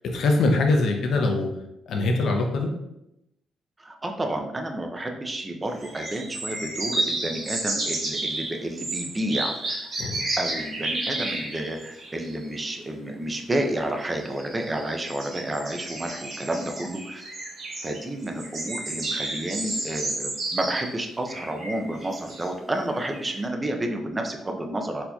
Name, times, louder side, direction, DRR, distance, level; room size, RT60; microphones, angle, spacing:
voice 1, 0.0-1.5 1.9-2.7 10.0-10.2, left 2 dB, 60° left, 3 dB, 0.5 m, -23 dB
voice 2, 3.8-9.9 10.4-17.3 17.8-25.0, right 1 dB, 15° right, 3 dB, 0.4 m, -30 dB
sound 1, 5.7-12.5 14.0-20.9 21.3-23.4, right 2 dB, 45° right, 0.9 m, -32 dB
4.2 x 2.8 x 2.2 m, 0.86 s
cardioid pair, 150°, 0 cm